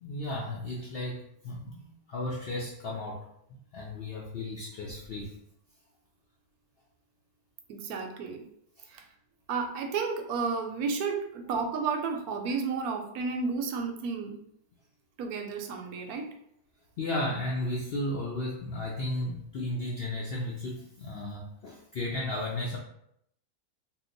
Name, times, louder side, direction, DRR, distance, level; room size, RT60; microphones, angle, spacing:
voice 1, 0.0-3.3 3.7-5.3 8.8-8.9 17.0-22.8, left 1 dB, 85° left, -3 dB, 0.5 m, -34 dB
voice 2, 7.7-8.4 8.9-9.0 9.5-14.4 15.2-16.3, right 5 dB, 75° right, 4 dB, 1.0 m, -32 dB
2.8 x 2.1 x 3.8 m, 0.72 s
omnidirectional pair, 1.6 m